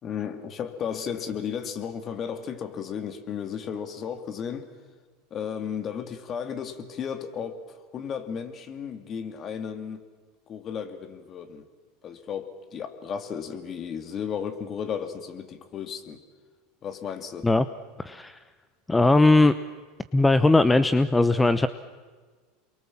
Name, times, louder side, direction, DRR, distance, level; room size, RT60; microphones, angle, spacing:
voice 1, 0.0-4.7 5.3-7.6 7.9-10.0 10.5-11.6 12.0-16.2 16.8-17.5, left 7 dB, 40° left, 9 dB, 2.5 m, -34 dB
voice 2, 18.0-18.4 18.9-19.5 20.1-21.7, left 2 dB, 10° left, 14 dB, 0.8 m, -19 dB
28.5 x 23.0 x 7.4 m, 1.5 s
hypercardioid pair, 85°, 0 cm